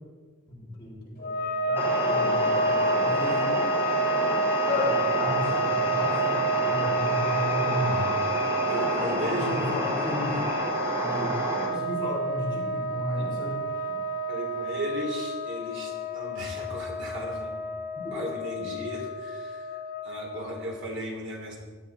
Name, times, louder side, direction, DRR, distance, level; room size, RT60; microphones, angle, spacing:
voice 1, 0.5-3.6 4.7-8.1 9.3-10.5 11.0-13.6 17.9-18.2, left 1 dB, 25° left, -5 dB, 5.1 m, -33 dB
sound 1, 1.2-20.8, right 1 dB, 45° left, 1.0 m, -29 dB
sound 2, 1.8-11.7, equal, 10° right, 4.3 m, -30 dB
voice 2, 8.7-9.6 12.0-12.1 14.3-17.6 18.1-21.6, equal, 60° right, 0 dB, 3.1 m, -35 dB
17.5 x 12.5 x 4.2 m, 1.5 s
head